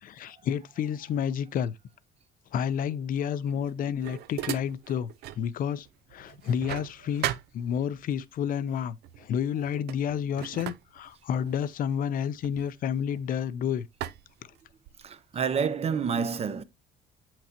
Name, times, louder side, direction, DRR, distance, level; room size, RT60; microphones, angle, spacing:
voice 1, 0.0-1.7 2.5-5.9 6.1-13.9, left 8 dB, 55° left, 0.6 m, -30 dB
sound 1, 3.5-5.5 5.8-8.2 9.0-9.3 9.6-13.5 14.0-15.1, right 13 dB, 75° right, 0.5 m, -38 dB
voice 2, 15.0-16.6, right 6 dB, 35° right, 0.8 m, -28 dB
7.8 x 5.9 x 2.8 m
cardioid pair, 110°, 17 cm